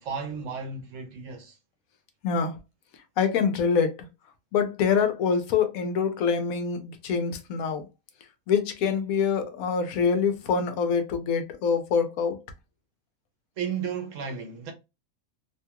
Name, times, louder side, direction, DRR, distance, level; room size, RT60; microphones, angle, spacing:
voice 1, 0.0-1.6 13.6-14.7, right 6 dB, 70° right, 1.0 m, -33 dB
voice 2, 2.2-2.6 3.2-4.1 4.5-7.9 8.5-12.4, left 6 dB, 80° left, 1.1 m, -25 dB
2.9 x 2.3 x 2.8 m
omnidirectional pair, 1.5 m